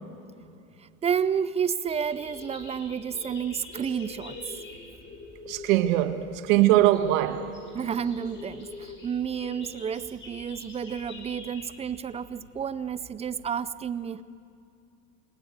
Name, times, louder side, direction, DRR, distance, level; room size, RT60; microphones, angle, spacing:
voice 1, 0.8-4.4 7.7-14.2, right 7 dB, 15° right, 0.6 m, -30 dB
sound 1, 1.8-13.6, left 3 dB, 25° left, 5.7 m, -45 dB
voice 2, 5.5-7.5, right 14 dB, 70° right, 1.5 m, -22 dB
28.0 x 18.0 x 8.1 m
supercardioid pair, 120°, 42 cm